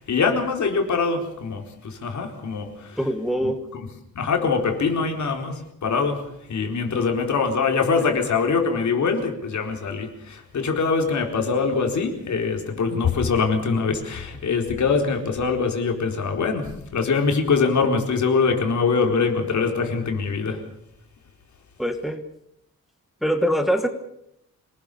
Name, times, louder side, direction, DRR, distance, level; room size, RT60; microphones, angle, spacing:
voice 1, 0.0-3.0 3.7-3.8 4.1-16.7 16.9-20.6, left 5 dB, 60° left, 3 dB, 4.3 m, -23 dB
voice 2, 3.0-3.7 21.8-22.2 23.2-23.9, equal, ahead, 6 dB, 1.3 m, -23 dB
27.0 x 19.5 x 7.0 m, 0.78 s
wide cardioid pair, 170°, 32 cm